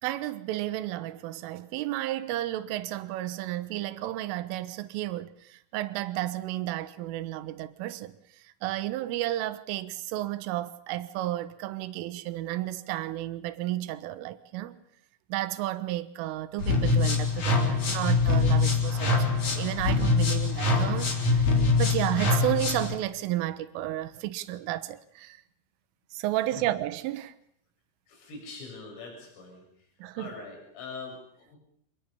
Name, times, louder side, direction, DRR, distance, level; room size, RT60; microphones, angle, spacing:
voice 1, 0.0-8.2 8.6-14.8 15.3-19.3 19.5-25.4 26.1-27.3 30.0-30.3, right 15 dB, 80° right, 3.7 m, -32 dB
sound 1, 16.6-22.9, left 3 dB, 40° left, 4.5 m, -24 dB
voice 2, 28.1-29.6 30.2-31.6, left 4 dB, 75° left, 9.4 m, -43 dB
26.5 x 21.0 x 7.1 m
omnidirectional pair, 5.8 m